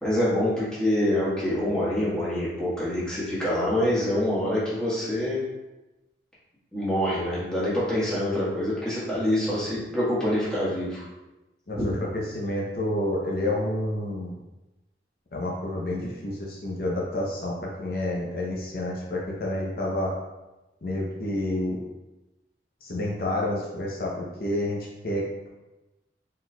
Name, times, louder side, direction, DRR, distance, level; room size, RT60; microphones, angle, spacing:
voice 1, 0.0-5.4 6.7-11.0 11.7-11.9, left 1 dB, 5° left, -10 dB, 1.3 m, -26 dB
voice 2, 11.7-14.4 15.3-20.1 20.8-21.8 22.8-25.5, left 1 dB, 55° left, -3 dB, 0.6 m, -29 dB
4.2 x 4.1 x 2.2 m, 1.0 s
head